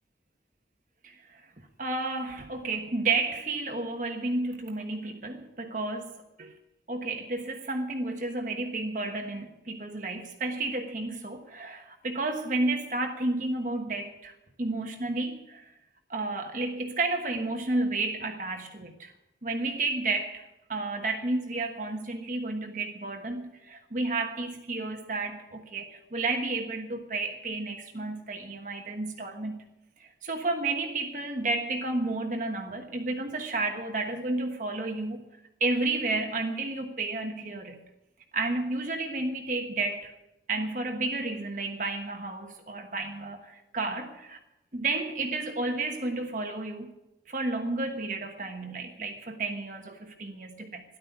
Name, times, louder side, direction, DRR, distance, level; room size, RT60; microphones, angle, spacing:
voice 1, 1.0-1.4 1.8-6.5 6.9-15.7 16.1-19.1 19.4-29.6 30.0-35.2 35.6-37.8 38.3-40.1 40.5-44.4 44.7-46.9 47.3-50.8, right 2 dB, 45° right, 1.3 m, -31 dB
13.5 x 11.5 x 8.1 m
head